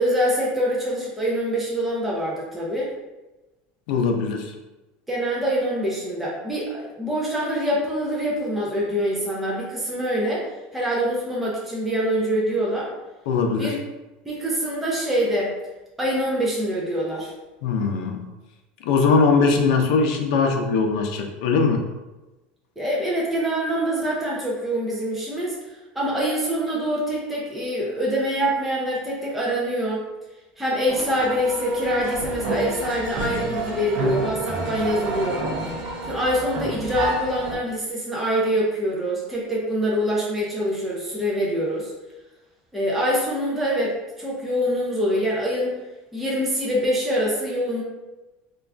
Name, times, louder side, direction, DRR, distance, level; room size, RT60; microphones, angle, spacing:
voice 1, 0.0-2.9 5.1-12.9 13.6-13.8 14.3-15.6 16.0-17.3 22.8-25.6 26.0-30.0 30.6-35.5 36.1-41.9 42.7-45.7 46.1-47.8, equal, 5° right, -5 dB, 0.4 m, -25 dB
voice 2, 3.9-4.5 13.3-13.7 17.6-18.2 18.8-21.8, left 4 dB, 80° left, 3 dB, 0.5 m, -20 dB
sound 1, 30.9-37.5, right 1 dB, 50° right, 0.6 m, -29 dB
2.4 x 2.3 x 3.2 m, 1.1 s
cardioid pair, 165°, 4 cm